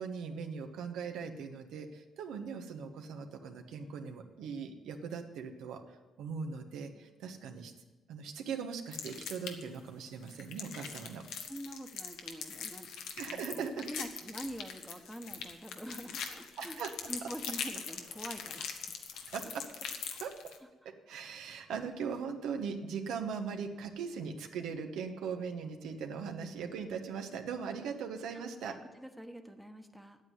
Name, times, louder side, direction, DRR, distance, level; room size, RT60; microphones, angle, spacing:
voice 1, 0.0-5.8 6.2-7.7 8.1-11.2 13.2-13.9 16.6-16.9 19.3-19.6 20.2-20.3 21.1-28.7, right 6 dB, 85° right, 5 dB, 1.1 m, -39 dB
sound 1, 8.9-9.8 10.2-20.6, left 7 dB, 85° left, 1.2 m, -42 dB
voice 2, 11.5-16.8 17.1-18.9 20.1-20.2 21.7-21.9 28.3-30.2, equal, ahead, 6 dB, 1.1 m, -46 dB
8.8 x 8.2 x 9.2 m, 1.2 s
cardioid pair, 90°, 0 cm